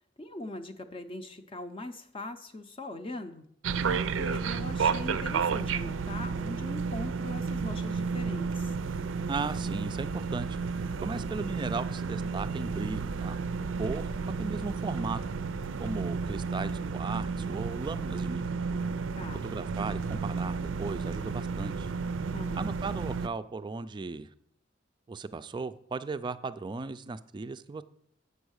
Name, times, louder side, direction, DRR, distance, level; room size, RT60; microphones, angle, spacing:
voice 1, 0.2-3.5 3.8-8.7 19.2-19.5 22.3-22.8, left 2 dB, 30° left, 7 dB, 0.5 m, -41 dB
sound 1, 3.6-23.3, right 5 dB, 90° right, 0.4 m, -32 dB
voice 2, 9.3-13.4 13.8-14.1 14.4-15.2 15.8-18.4 19.4-21.9 22.6-24.3 25.1-27.8, right 4 dB, 25° right, 12 dB, 0.3 m, -36 dB
8.0 x 5.3 x 6.4 m, 0.71 s
head